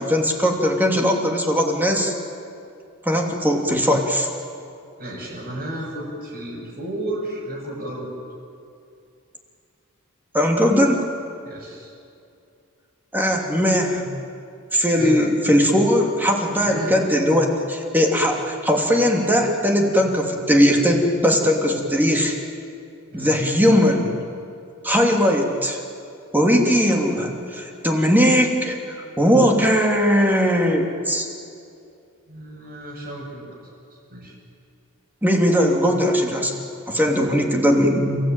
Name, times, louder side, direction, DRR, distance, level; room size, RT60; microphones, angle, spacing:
voice 1, 0.0-2.1 3.0-4.3 10.3-11.1 13.1-14.0 14.7-22.3 23.1-24.2 24.8-25.8 26.3-31.3 35.2-36.6 36.9-38.2, equal, 10° right, 0 dB, 3.1 m, -19 dB
voice 2, 5.0-8.1 11.4-11.9 15.0-15.2 16.6-16.9 23.1-23.4 32.3-33.6 33.9-34.4, right 1 dB, 50° right, -8 dB, 6.7 m, -33 dB
30.0 x 17.0 x 9.2 m, 2.5 s
head